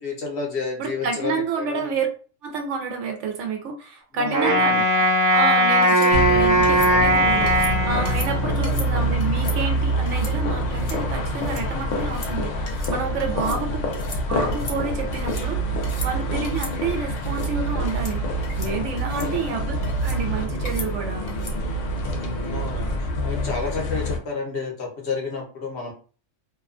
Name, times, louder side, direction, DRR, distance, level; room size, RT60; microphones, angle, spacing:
voice 1, 0.0-1.9 4.1-4.8 8.6-8.9 13.3-13.8 19.1-19.5 22.4-22.9 23.2-25.9, left 4 dB, 65° left, -1 dB, 1.1 m, -31 dB
voice 2, 0.8-2.1 2.4-5.1 5.3-7.5 7.9-13.8 14.3-21.4, right 4 dB, 80° right, 4 dB, 0.9 m, -29 dB
Wind instrument woodwind instrument, 4.3-8.7, equal, 55° right, 0.8 m, -19 dB
sound 1, 5.8-6.1 6.6-6.9 7.5-7.7 8.1-8.3 8.6-8.9 9.2-9.6 10.1-10.3 10.7-11.0 11.3-11.6 12.0-12.3 12.7-12.9 13.2-13.6 13.9-14.2 14.5-15.5 15.8-16.1 16.4-16.7 17.2-17.5 17.9-18.1 18.4-18.7 19.0-19.3 19.8-20.2 20.7-20.9 21.3-21.6, left 3 dB, 45° left, 0.6 m, -37 dB
sound 2, 6.1-24.2, right 1 dB, 85° left, 1.0 m, -26 dB
2.7 x 2.2 x 2.4 m, 0.38 s
omnidirectional pair, 1.2 m